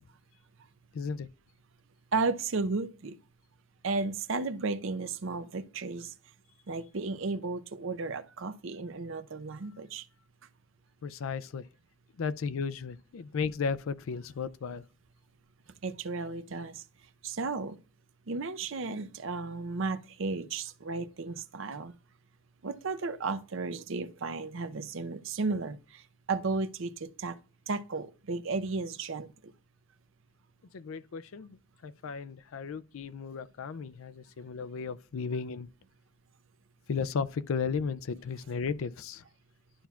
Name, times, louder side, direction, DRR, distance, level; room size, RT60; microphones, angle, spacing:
voice 1, 0.9-1.3 11.0-11.6 12.2-14.8 30.7-31.6 31.8-35.7 36.9-39.2, left 5 dB, 75° left, 0.4 m, -34 dB
voice 2, 2.1-3.2 3.8-6.1 6.7-10.1 15.8-16.8 17.2-17.8 18.3-21.9 22.6-27.4 27.7-29.5, right 3 dB, 65° right, 0.6 m, -34 dB
11.5 x 5.6 x 2.3 m
head